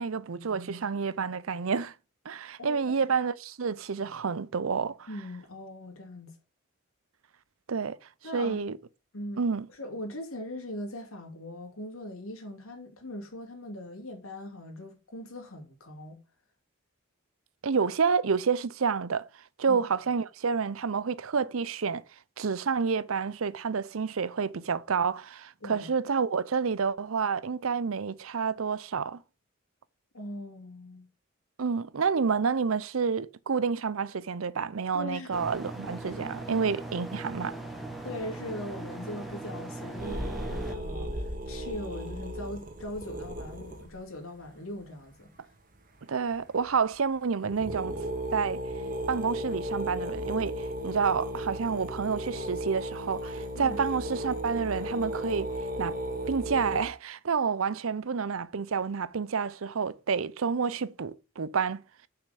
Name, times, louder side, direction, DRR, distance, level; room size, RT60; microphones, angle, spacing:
voice 1, 0.0-1.9 2.3-5.1 7.7-8.0 8.3-8.8 9.4-9.7 17.6-19.2 19.6-22.0 22.4-29.2 31.6-37.6 46.1-48.0 48.3-48.6 49.1-55.5 55.8-55.9 56.3-61.8, right 5 dB, 75° right, 0.6 m, -29 dB
voice 2, 2.6-3.0 5.1-6.3 8.2-8.6 9.1-9.4 9.7-16.2 19.7-19.8 25.6-25.9 30.1-31.1 34.9-35.3 38.0-45.3 53.5-53.8, left 1 dB, 85° left, 2.9 m, -40 dB
sound 1, 35.3-40.7, right 2 dB, ahead, 1.4 m, -39 dB
sound 2, 40.0-43.9 46.7-46.8 47.2-47.3 47.4-56.8, equal, 40° right, 1.7 m, -35 dB
6.8 x 5.8 x 6.8 m
head